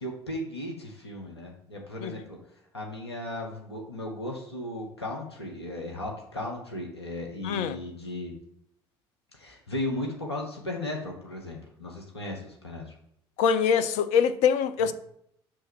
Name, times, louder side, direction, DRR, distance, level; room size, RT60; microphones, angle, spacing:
voice 1, 0.0-2.4 2.7-8.4 9.3-12.9, left 1 dB, 90° left, 1.1 m, -36 dB
voice 2, 7.4-7.8 13.4-14.9, left 7 dB, 60° left, 0.5 m, -24 dB
6.4 x 3.4 x 6.0 m
figure-of-eight pair, 55°, 13 cm